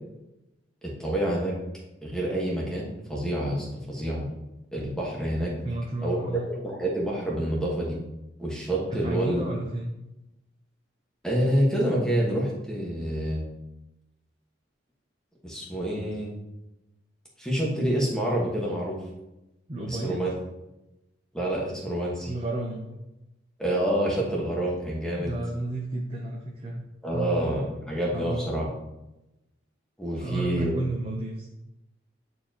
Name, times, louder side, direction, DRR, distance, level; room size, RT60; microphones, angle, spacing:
voice 1, 0.8-1.5 2.0-4.3 4.7-5.5 6.0-6.2 6.5-8.0 8.4-9.4 11.2-13.4 15.4-16.3 17.4-19.0 19.9-20.3 21.3-22.3 23.6-25.3 27.0-28.7 30.0-30.8, right 1 dB, 5° left, -4 dB, 1.4 m, -27 dB
voice 2, 5.6-6.5 9.0-9.9 19.7-20.3 22.2-22.9 25.2-26.9 27.1-27.6 28.1-28.5 30.1-31.5, right 2 dB, 30° right, -1 dB, 0.7 m, -32 dB
9.6 x 4.6 x 2.9 m, 0.92 s
head